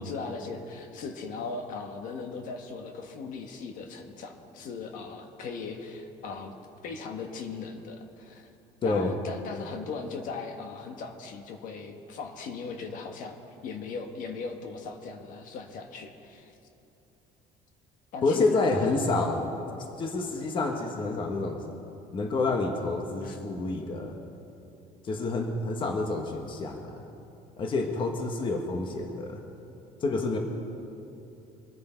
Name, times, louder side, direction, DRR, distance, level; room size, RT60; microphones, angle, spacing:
voice 1, 0.0-6.5 6.8-8.5 8.8-13.4 13.6-16.5 18.1-18.8 23.2-23.4, left 4 dB, 60° left, 4 dB, 1.4 m, -38 dB
voice 2, 8.8-9.1 18.2-19.4 20.0-21.6 22.1-24.2 25.0-27.0 27.6-29.4 30.0-30.4, left 3 dB, 30° left, 3 dB, 1.3 m, -28 dB
24.5 x 9.5 x 4.5 m, 2.8 s
cardioid pair, 155°, 16 cm